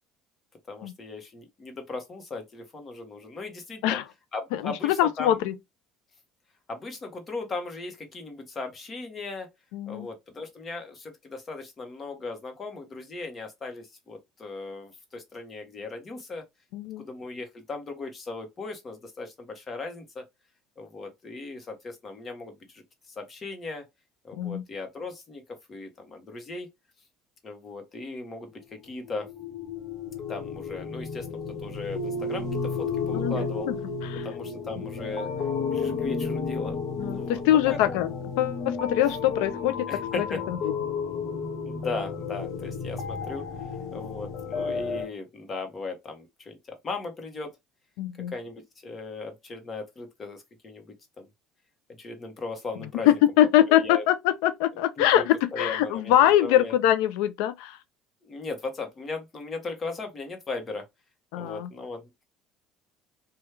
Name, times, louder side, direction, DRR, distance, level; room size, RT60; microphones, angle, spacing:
voice 1, 0.7-4.0 4.3-5.4 6.7-9.5 9.9-16.5 17.0-20.2 20.8-23.8 24.2-25.4 25.7-26.7 27.4-29.3 30.3-33.7 34.2-35.3 35.7-36.8 37.1-38.0 39.9-40.4 41.6-43.5 43.9-47.5 48.3-50.9 51.2-51.3 52.0-53.2 53.7-54.0 55.0-55.3 55.5-56.7 58.2-60.9 61.3-62.3, left 3 dB, 30° left, 1.0 m, -37 dB
voice 2, 4.5-5.5 9.7-10.1 16.7-17.0 24.4-24.6 33.1-33.3 33.7-33.8 34.1-34.3 37.0-40.6 48.0-48.3 53.1-57.8 61.3-61.7, left 12 dB, 90° left, 0.4 m, -23 dB
sound 1, 29.1-45.1, left 4 dB, 65° left, 1.0 m, -32 dB
3.0 x 2.3 x 3.2 m
cardioid pair, 125°, 0 cm